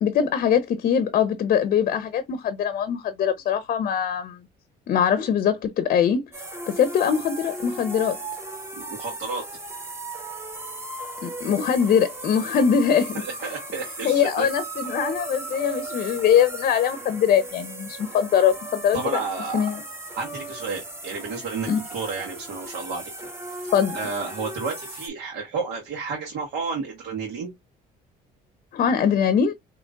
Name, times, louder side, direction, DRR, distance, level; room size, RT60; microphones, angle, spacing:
voice 1, 0.0-4.4 4.9-8.2 11.2-13.2 14.0-19.0 19.5-19.8 21.7-21.8 23.7-24.0 28.7-29.5, left 8 dB, 55° left, 0.6 m, -22 dB
sound 1, 6.3-25.1, right 2 dB, 15° right, 1.3 m, -37 dB
voice 2, 8.8-9.4 13.1-14.5 18.9-19.7 20.2-27.5, right 4 dB, 80° right, 1.5 m, -32 dB
5.1 x 2.9 x 2.3 m
cardioid pair, 110°, 17 cm